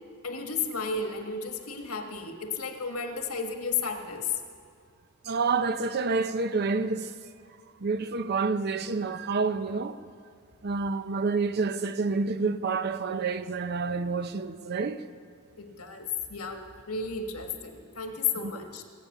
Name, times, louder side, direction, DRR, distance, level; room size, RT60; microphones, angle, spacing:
voice 1, 0.2-4.4 15.6-18.8, left 5 dB, 85° left, 1.6 m, -33 dB
voice 2, 5.2-7.1 7.8-10.0 10.6-15.0 18.4-18.5, right 4 dB, 50° right, 0.6 m, -28 dB
23.5 x 8.8 x 6.7 m
head